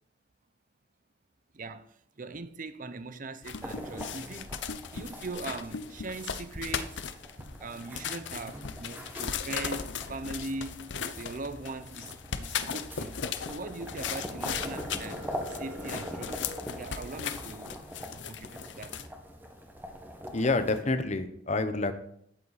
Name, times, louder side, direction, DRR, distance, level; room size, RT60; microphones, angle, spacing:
voice 1, 1.5-4.5 4.9-7.1 7.6-13.2 13.5-16.5 16.8-17.7 18.1-19.0, right 3 dB, 45° right, 0.7 m, -40 dB
sound 1, 3.4-19.1, left 7 dB, 65° left, 0.7 m, -38 dB
sound 2, 3.6-20.8, equal, 10° right, 1.4 m, -43 dB
Telephone, 14.5-16.5, left 1 dB, 65° right, 3.3 m, -46 dB
voice 2, 20.3-21.9, left 3 dB, 35° left, 0.9 m, -28 dB
12.0 x 8.3 x 4.1 m
head